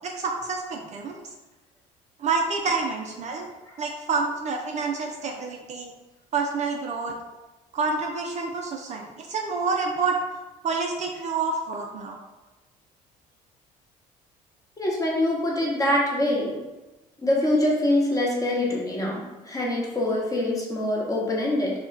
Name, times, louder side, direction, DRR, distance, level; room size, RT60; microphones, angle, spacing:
voice 1, 0.0-1.2 2.2-3.5 3.8-5.9 6.3-7.2 7.7-10.2 10.6-12.2, right 4 dB, 45° right, 1 dB, 0.4 m, -28 dB
voice 2, 14.8-16.6 17.2-21.7, left 1 dB, 20° left, -3 dB, 1.0 m, -24 dB
2.3 x 2.1 x 3.8 m, 1.1 s
supercardioid pair, 75°, 17 cm